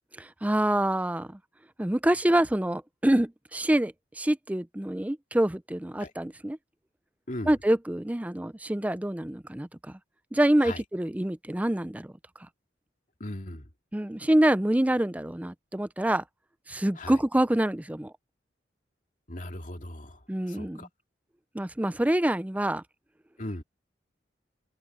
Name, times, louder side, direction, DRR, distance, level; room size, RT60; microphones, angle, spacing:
voice 1, 0.2-1.4 1.8-6.6 7.5-10.0 10.3-12.1 13.9-16.2 16.7-18.1 20.3-20.9 21.5-22.8, right 1 dB, 10° right, 0.5 m, -26 dB
voice 2, 13.2-13.7 17.0-17.2 19.3-20.9 23.4-23.6, left 1 dB, 45° left, 2.4 m, -38 dB
head